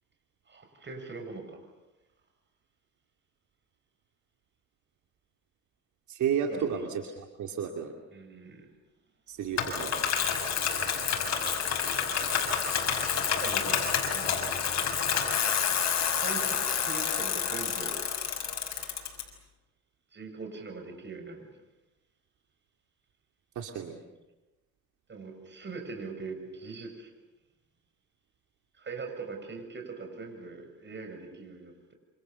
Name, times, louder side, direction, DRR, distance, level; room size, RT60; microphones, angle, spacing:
voice 1, 0.5-1.6 6.5-6.8 8.1-8.7 13.4-14.4 16.1-18.0 20.1-21.5 25.1-27.1 28.7-31.9, right 4 dB, 40° right, 5 dB, 7.4 m, -41 dB
voice 2, 6.1-8.0 9.3-10.0 23.5-24.0, right 8 dB, 75° right, 3 dB, 2.7 m, -32 dB
Bicycle, 9.6-19.2, left 7 dB, 60° left, 6.0 m, -29 dB
28.0 x 27.0 x 7.0 m, 1.0 s
cardioid pair, 90°, 30 cm